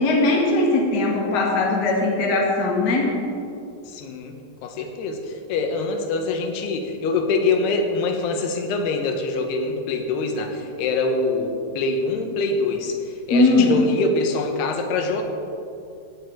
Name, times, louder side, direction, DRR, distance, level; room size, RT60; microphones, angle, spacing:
voice 1, 0.0-3.1 13.3-13.7, left 2 dB, 40° left, -1 dB, 1.7 m, -19 dB
voice 2, 3.9-4.4 4.6-15.2, left 3 dB, 90° left, 4 dB, 3.2 m, -24 dB
16.5 x 9.7 x 4.6 m, 2.6 s
omnidirectional pair, 4.5 m